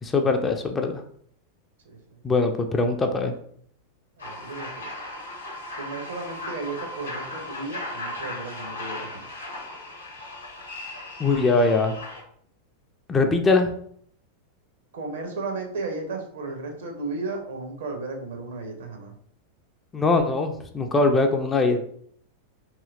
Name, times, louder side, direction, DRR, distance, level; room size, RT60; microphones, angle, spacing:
voice 1, 0.0-1.0 2.2-3.3 11.2-12.0 13.1-13.7 19.9-21.9, left 3 dB, 15° left, 4 dB, 0.3 m, -22 dB
voice 2, 1.9-2.2 4.2-4.9 5.8-9.3 14.9-19.1, right 3 dB, 60° right, 3 dB, 0.7 m, -34 dB
sound 1, 4.2-12.2, left 2 dB, 75° left, 0.7 m, -37 dB
2.9 x 2.7 x 2.4 m, 0.62 s
figure-of-eight pair, 90°, 0 cm